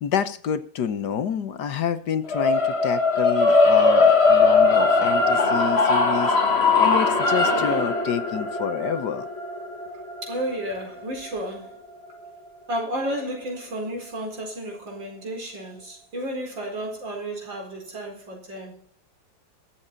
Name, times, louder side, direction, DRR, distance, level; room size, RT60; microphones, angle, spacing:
voice 1, 0.0-6.3 6.8-9.3, left 8 dB, 65° left, 1.6 m, -28 dB
sound 1, 2.3-12.5, left 3 dB, 35° left, 2.0 m, -20 dB
voice 2, 10.2-11.8 12.7-18.8, right 1 dB, 80° right, 5.2 m, -32 dB
22.5 x 7.6 x 4.0 m
omnidirectional pair, 2.0 m